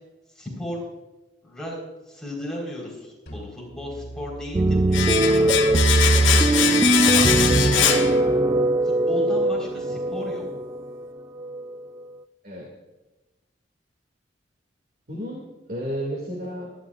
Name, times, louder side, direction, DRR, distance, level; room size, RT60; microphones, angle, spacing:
voice 1, 0.3-0.9 1.4-1.8 2.1-5.5 6.5-7.9 8.8-10.4, left 1 dB, 5° left, -5 dB, 4.2 m, -35 dB
sound 1, 3.3-8.7, right 1 dB, 60° left, 3.0 m, -45 dB
sound 2, 4.5-12.0, right 2 dB, 20° right, 0.3 m, -21 dB
Domestic sounds home sounds, 4.9-8.8 9.0-9.2, left 8 dB, 90° left, 0.9 m, -23 dB
voice 2, 6.7-7.5 12.4-12.7 15.1-16.7, equal, 50° right, -2 dB, 2.4 m, -33 dB
23.0 x 11.5 x 2.5 m, 1.1 s
head